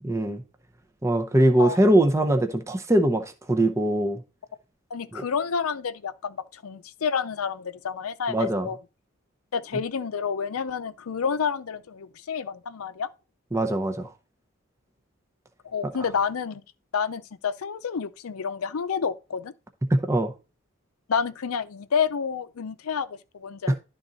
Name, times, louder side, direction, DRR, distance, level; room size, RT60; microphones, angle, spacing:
voice 1, 0.0-0.4 1.0-4.2 5.1-5.2 8.3-8.7 13.5-14.1 19.9-20.3 23.7-23.8, right 1 dB, 15° right, 0.7 m, -22 dB
voice 2, 4.9-8.8 9.5-13.1 15.6-16.6 16.9-19.5 21.1-23.8, left 6 dB, 85° left, 0.5 m, -29 dB
11.5 x 3.8 x 4.0 m
head